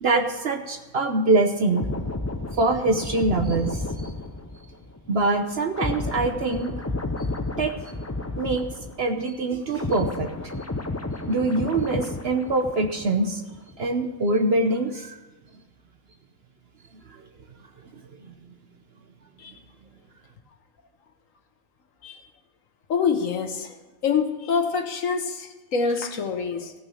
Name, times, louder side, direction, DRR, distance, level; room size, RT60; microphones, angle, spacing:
voice 1, 0.0-1.8 2.5-4.1 5.1-6.7 7.6-7.7 8.4-8.6 9.0-10.5 11.3-13.4 13.8-15.2 17.1-17.3 18.3-18.4, right 2 dB, 50° right, 5 dB, 1.0 m, -24 dB
sound 1, 1.7-9.2 9.5-13.2 13.5-13.8, left 2 dB, 20° left, 0.4 m, -32 dB
voice 2, 22.9-23.8 24.0-26.7, left 5 dB, 65° left, 7 dB, 1.4 m, -26 dB
16.0 x 6.1 x 6.3 m, 1.2 s
omnidirectional pair, 1.5 m